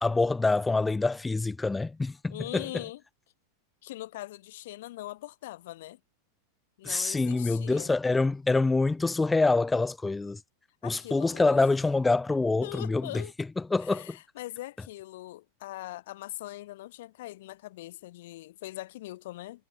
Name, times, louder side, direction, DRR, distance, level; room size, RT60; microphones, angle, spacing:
voice 1, 0.0-2.8 6.8-10.4 10.8-14.2, left 3 dB, 10° left, 0.4 m, -26 dB
voice 2, 2.3-3.0 3.8-6.0 6.8-7.9 10.8-11.6 12.6-13.3 13.8-19.7, left 16 dB, 55° left, 2.8 m, -41 dB
figure-of-eight pair, 90°, 0 cm